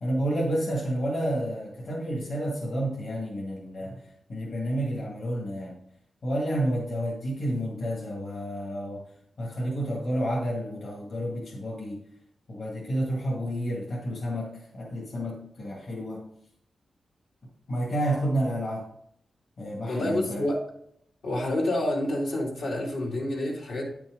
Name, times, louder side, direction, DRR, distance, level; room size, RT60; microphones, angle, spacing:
voice 1, 0.0-4.0 4.3-5.8 6.2-9.0 9.4-12.0 12.5-16.2 17.7-18.8 19.6-20.5, equal, 55° left, -3 dB, 1.9 m, -30 dB
voice 2, 19.9-20.6 21.2-23.9, left 1 dB, 85° left, -3 dB, 2.7 m, -28 dB
9.6 x 6.0 x 3.8 m, 0.71 s
wide cardioid pair, 130°, 0 cm